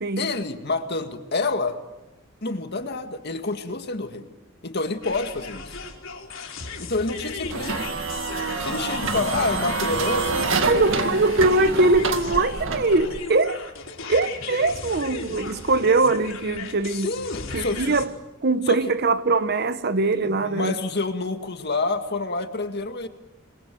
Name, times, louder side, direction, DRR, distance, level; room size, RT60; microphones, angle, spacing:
voice 1, 0.2-1.8 2.4-4.3 4.6-5.7 6.8-7.9 8.6-11.1 16.9-17.9 18.7-18.8 20.2-23.1, left 3 dB, 55° left, 2.0 m, -28 dB
sound 1, 5.0-18.0, left 4 dB, 70° left, 4.3 m, -36 dB
sound 2, 7.5-13.3, right 3 dB, 70° right, 2.1 m, -27 dB
voice 2, 10.7-13.7 14.1-17.1 17.5-18.1 18.4-20.7, right 3 dB, 55° right, 1.0 m, -22 dB
28.5 x 21.5 x 7.8 m
head